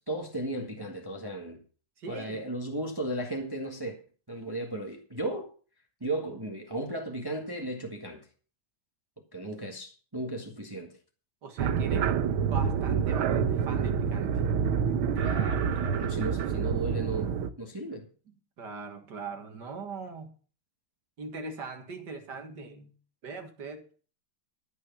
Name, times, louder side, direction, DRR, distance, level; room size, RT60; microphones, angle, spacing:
voice 1, 0.1-1.6 2.1-4.0 4.3-5.5 6.0-8.3 9.3-10.9 15.1-18.1, right 1 dB, 10° right, 1.5 m, -35 dB
voice 2, 2.0-2.5 11.4-12.2 12.5-14.4 18.6-20.3 21.2-22.9 23.2-23.8, right 4 dB, 55° right, 2.2 m, -40 dB
sound 1, 11.6-17.5, right 7 dB, 85° right, 1.7 m, -27 dB
13.5 x 6.4 x 7.2 m
omnidirectional pair, 2.2 m